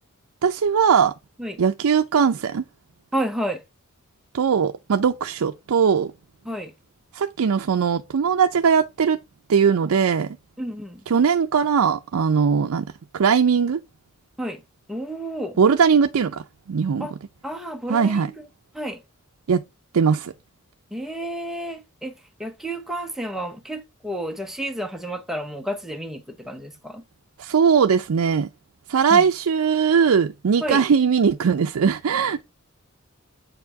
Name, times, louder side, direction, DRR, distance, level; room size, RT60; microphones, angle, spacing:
voice 1, 0.4-1.1 1.6-2.6 4.3-6.1 7.1-9.2 9.5-10.4 11.1-12.9 13.1-13.8 15.6-16.4 16.7-17.1 17.9-18.3 19.5-19.6 19.9-20.3 27.4-28.5 28.9-32.4, right 6 dB, 85° right, 0.5 m, -20 dB
voice 2, 3.1-3.6 6.4-6.7 10.6-11.0 14.4-14.6 14.9-15.6 17.0-17.1 17.4-18.5 18.7-19.0 20.9-22.1 22.4-27.0 29.1-29.3 30.6-30.8, right 1 dB, ahead, 0.8 m, -31 dB
7.8 x 4.7 x 3.5 m
head